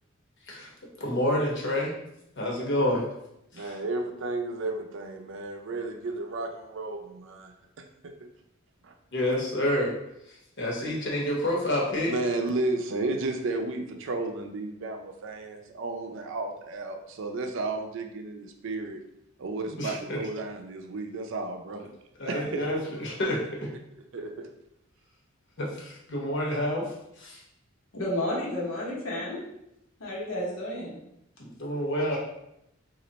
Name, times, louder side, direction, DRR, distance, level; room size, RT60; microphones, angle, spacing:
voice 1, 1.0-1.9 2.4-3.1 3.5-3.8 9.1-9.9 10.3-12.1 19.6-20.2 22.2-23.7 25.6-27.4 31.4-32.2, left 1 dB, 60° left, -2 dB, 1.0 m, -29 dB
voice 2, 3.5-8.3 8.8-8.9 12.0-19.0 19.4-21.8 22.3-22.7 24.1-24.5, right 2 dB, 65° right, 4 dB, 0.5 m, -33 dB
voice 3, 27.9-29.4 30.0-31.0 32.0-32.2, left 1 dB, 85° left, -4 dB, 1.1 m, -31 dB
3.0 x 2.5 x 4.0 m, 0.82 s
head